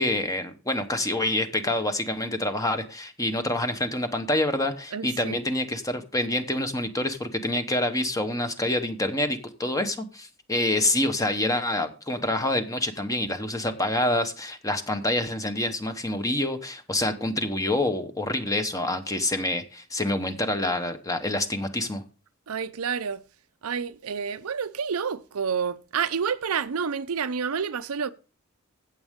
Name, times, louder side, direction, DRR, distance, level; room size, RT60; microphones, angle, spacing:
voice 1, 0.0-22.0, left 1 dB, 15° left, 1.0 m, -27 dB
voice 2, 4.9-5.4 22.5-23.2 23.6-28.1, right 6 dB, 85° right, 0.6 m, -29 dB
15.5 x 7.4 x 3.6 m
head